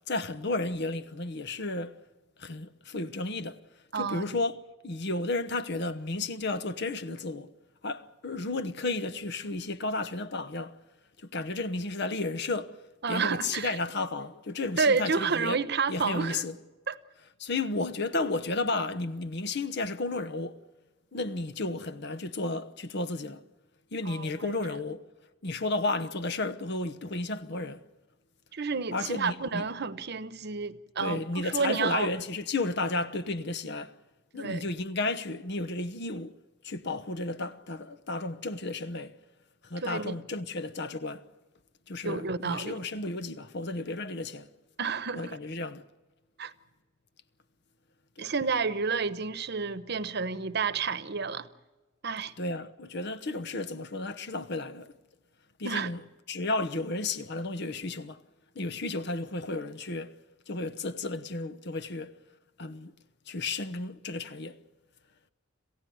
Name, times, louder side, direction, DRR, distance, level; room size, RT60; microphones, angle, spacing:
voice 1, 0.1-2.0 2.4-3.6 3.9-4.6 4.8-7.5 7.8-10.8 11.2-12.8 13.1-15.6 15.9-16.6 17.4-20.6 21.1-23.4 23.9-25.0 25.4-27.8 28.9-29.7 31.0-34.0 34.3-36.4 36.6-39.2 39.6-41.3 41.9-44.5 45.1-45.8 48.2-48.3 52.4-54.9 55.6-56.0 56.3-58.2 58.5-60.2 60.5-62.1 62.6-62.9 63.3-64.6, left 2 dB, 60° left, 1.0 m, -33 dB
voice 2, 3.9-4.2 13.0-13.8 14.8-16.4 16.9-17.0 24.0-24.5 28.5-32.1 34.3-34.6 39.8-40.2 42.0-42.8 44.8-45.4 46.4-46.5 48.2-51.5 52.0-52.3 55.6-55.9, right 5 dB, 60° right, 1.0 m, -30 dB
27.0 x 15.5 x 9.4 m
head